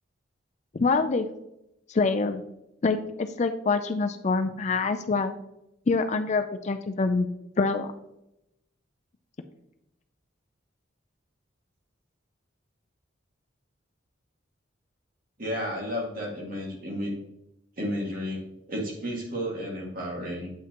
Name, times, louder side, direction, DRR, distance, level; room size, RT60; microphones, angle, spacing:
voice 1, 0.7-1.3 1.9-2.4 2.8-5.3 5.9-7.3 7.6-7.9, left 4 dB, 35° left, 8 dB, 0.4 m, -25 dB
voice 2, 15.4-17.1 17.8-18.4 18.7-20.5, equal, 50° right, -2 dB, 2.0 m, -32 dB
8.5 x 5.9 x 2.9 m, 0.84 s
head